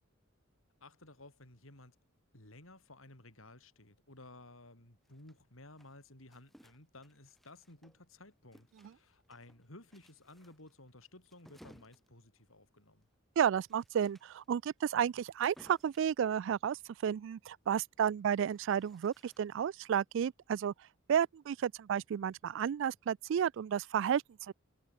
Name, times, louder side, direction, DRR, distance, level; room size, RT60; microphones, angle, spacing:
voice 1, 0.8-2.0 2.3-13.1, left 2 dB, 80° left, 6.7 m, -56 dB
sound 1, 5.0-8.2 8.5-16.2 18.1-19.7, equal, ahead, 3.7 m, -63 dB
voice 2, 13.4-16.8 17.0-20.7 21.1-24.5, right 8 dB, 65° right, 0.3 m, -32 dB
head